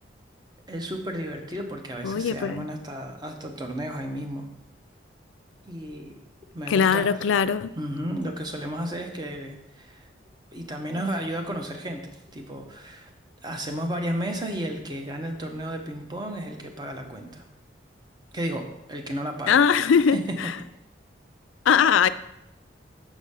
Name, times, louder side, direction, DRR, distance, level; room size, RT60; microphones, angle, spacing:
voice 1, 0.7-4.5 5.6-6.2 6.5-7.4 7.8-10.1 10.5-12.0 12.3-13.1 13.4-17.4 18.3-19.6 20.1-20.5, right 1 dB, 20° right, 0.8 m, -33 dB
voice 2, 2.0-2.7 6.7-7.7 19.5-20.5 21.7-22.1, left 7 dB, 90° left, 0.4 m, -21 dB
7.2 x 5.0 x 5.5 m
head